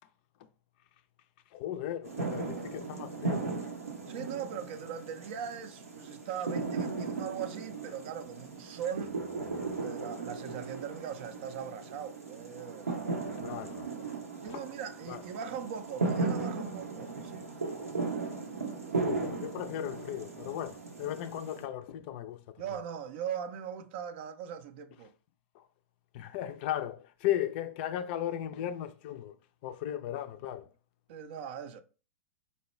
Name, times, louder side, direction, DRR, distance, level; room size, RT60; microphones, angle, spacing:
voice 1, 1.5-3.5 13.4-13.9 14.5-14.7 15.1-15.2 19.0-22.6 25.5-25.7 26.1-29.4 29.6-30.7, left 11 dB, 50° left, 0.3 m, -36 dB
sound 1, 2.0-21.6, right 4 dB, 85° right, 0.7 m, -37 dB
voice 2, 4.1-9.2 9.8-13.0 14.4-17.5 22.6-25.1 31.1-31.8, right 8 dB, 55° right, 0.4 m, -40 dB
4.2 x 2.2 x 3.0 m
figure-of-eight pair, 100°, 8 cm